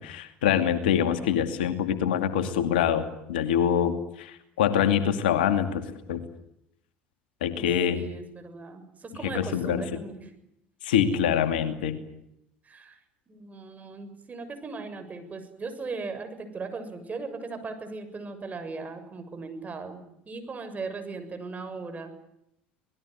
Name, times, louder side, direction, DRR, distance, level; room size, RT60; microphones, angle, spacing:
voice 1, 0.0-5.8 6.1-6.2 7.4-8.1 9.2-9.8 10.8-12.0, left 9 dB, 75° left, 9 dB, 2.5 m, -25 dB
voice 2, 7.9-10.3 11.0-11.3 12.6-13.0 13.3-22.1, right 4 dB, 30° right, 8 dB, 7.1 m, -38 dB
26.5 x 20.0 x 9.5 m, 0.79 s
hypercardioid pair, 65°, 5 cm